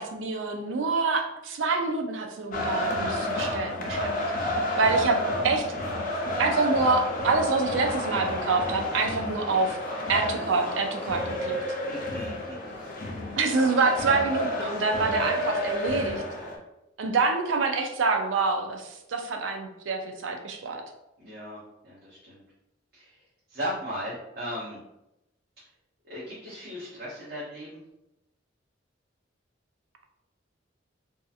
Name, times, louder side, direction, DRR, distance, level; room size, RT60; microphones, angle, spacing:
voice 1, 0.0-5.2 5.4-5.7 6.4-9.8 10.1-11.6 13.4-16.2 17.0-20.8, right 4 dB, 85° right, 4 dB, 0.4 m, -26 dB
sound 1, 2.5-16.6, left 1 dB, 45° left, 0.5 m, -31 dB
voice 2, 11.9-12.5 12.8-13.0 13.4-13.7 21.2-22.4 22.9-23.2 23.5-24.8 25.6-25.7 26.0-27.8, equal, 55° right, -8 dB, 0.7 m, -37 dB
2.7 x 2.5 x 2.3 m, 0.90 s
head